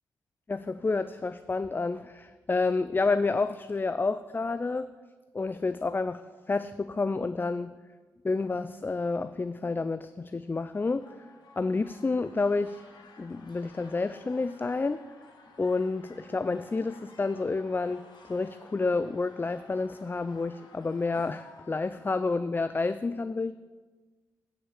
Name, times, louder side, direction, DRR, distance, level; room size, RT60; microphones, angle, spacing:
voice 1, 0.5-4.9 5.3-6.2 6.5-7.7 8.2-11.1 11.6-12.8 13.2-15.0 15.6-18.0 18.3-23.5, left 3 dB, 25° left, 12 dB, 0.4 m, -29 dB
sound 1, 10.4-22.0, left 3 dB, 65° left, 1.6 m, -54 dB
9.4 x 5.8 x 7.1 m, 1.3 s
hypercardioid pair, 40°, 8 cm